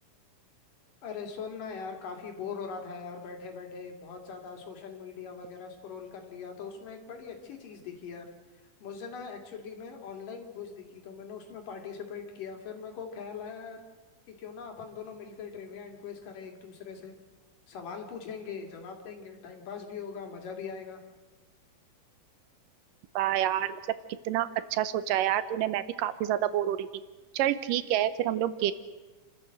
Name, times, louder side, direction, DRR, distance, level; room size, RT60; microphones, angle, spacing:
voice 1, 1.0-8.3 8.8-13.8 14.3-17.2 17.7-21.0, left 6 dB, 85° left, 3 dB, 4.1 m, -41 dB
voice 2, 23.2-23.8 24.3-26.9 27.3-28.7, right 12 dB, 85° right, 14 dB, 2.6 m, -28 dB
29.5 x 13.0 x 7.8 m, 1.2 s
omnidirectional pair, 3.7 m